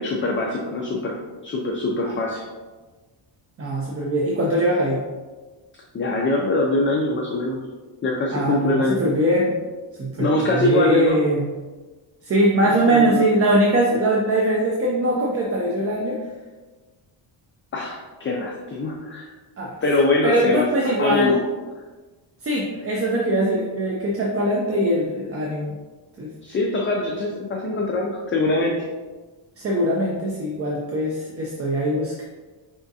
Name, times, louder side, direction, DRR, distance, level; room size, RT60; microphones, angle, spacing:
voice 1, 0.0-2.4 5.9-7.6 8.0-9.0 10.2-11.2 12.6-13.2 17.7-19.3 19.8-21.4 26.4-28.9, left 2 dB, 30° left, -1 dB, 0.3 m, -23 dB
voice 2, 3.6-5.0 8.3-9.6 10.0-11.5 12.2-16.2 19.6-19.8 20.2-21.4 22.4-25.7 26.2-26.3 29.6-32.2, right 1 dB, 30° right, -3 dB, 0.5 m, -21 dB
5.0 x 3.5 x 2.7 m, 1.3 s
wide cardioid pair, 160°, 49 cm